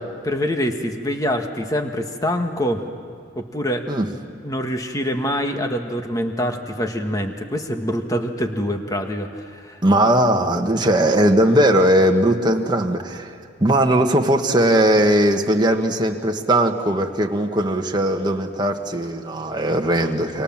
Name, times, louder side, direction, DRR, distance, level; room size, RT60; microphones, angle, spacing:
voice 1, 0.2-2.8 3.3-3.9 4.4-9.8, equal, 20° left, 5 dB, 1.6 m, -25 dB
voice 2, 9.8-13.3 13.6-20.4, right 1 dB, 20° right, 3 dB, 1.6 m, -18 dB
29.5 x 25.5 x 7.4 m, 2.3 s
head